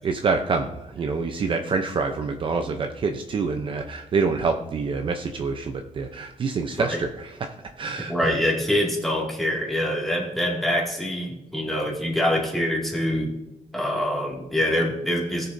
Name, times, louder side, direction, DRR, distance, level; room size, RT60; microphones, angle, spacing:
voice 1, 0.0-8.3, right 4 dB, 40° right, 5 dB, 0.7 m, -27 dB
voice 2, 8.1-13.3 13.7-15.5, left 1 dB, ahead, -2 dB, 2.3 m, -25 dB
18.5 x 6.8 x 2.7 m, 0.91 s
cardioid pair, 145°, 13 cm